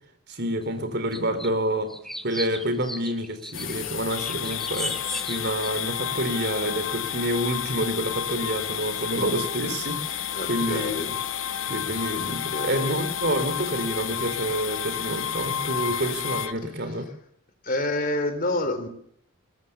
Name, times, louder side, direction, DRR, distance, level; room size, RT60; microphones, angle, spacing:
voice 1, 0.3-1.9 2.2-5.0 5.3-11.0 11.7-17.1, right 1 dB, 50° right, 10 dB, 4.0 m, -28 dB
sound 1, 1.1-1.5 1.9-5.7, left 1 dB, ahead, 1.0 m, -36 dB
sound 2, 3.5-16.5, left 11 dB, 60° left, 1.1 m, -35 dB
sound 3, 4.1-16.5, left 9 dB, 85° left, 1.3 m, -33 dB
voice 2, 10.3-11.1 12.2-13.0 17.6-18.9, left 1 dB, 40° left, 8 dB, 3.8 m, -28 dB
21.0 x 20.0 x 7.2 m, 0.68 s
head